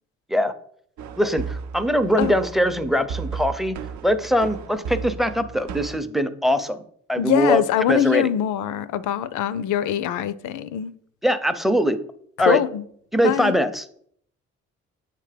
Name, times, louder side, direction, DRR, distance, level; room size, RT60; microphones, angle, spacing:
sound 1, 1.0-6.0, right 6 dB, 70° right, 0.6 m, -34 dB
voice 1, 1.2-3.8 4.0-6.8 7.1-7.6 7.9-8.3 11.2-12.0 12.4-12.6 13.1-13.8, equal, ahead, 0.5 m, -21 dB
voice 2, 7.2-10.9 12.4-12.8 13.2-13.5, left 11 dB, 80° left, 0.5 m, -23 dB
7.3 x 3.3 x 5.0 m
cardioid pair, 90°, 30 cm